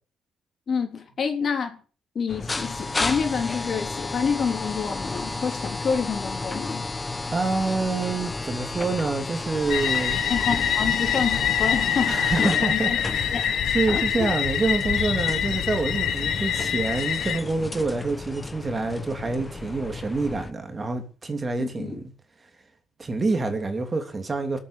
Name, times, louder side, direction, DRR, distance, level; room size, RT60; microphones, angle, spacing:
voice 1, 0.7-1.8 2.2-6.9 10.3-13.0 13.3-13.5 13.9-14.0 21.6-22.0, left 6 dB, 50° left, 3.7 m, -28 dB
sound 1, 2.3-20.5, left 3 dB, 20° left, 1.1 m, -33 dB
voice 2, 7.3-10.2 12.1-22.1 23.0-24.6, right 3 dB, 30° right, 3.0 m, -27 dB
sound 2, 9.7-17.4, left 9 dB, 75° left, 1.6 m, -25 dB
18.5 x 8.5 x 7.5 m
cardioid pair, 90°, 0 cm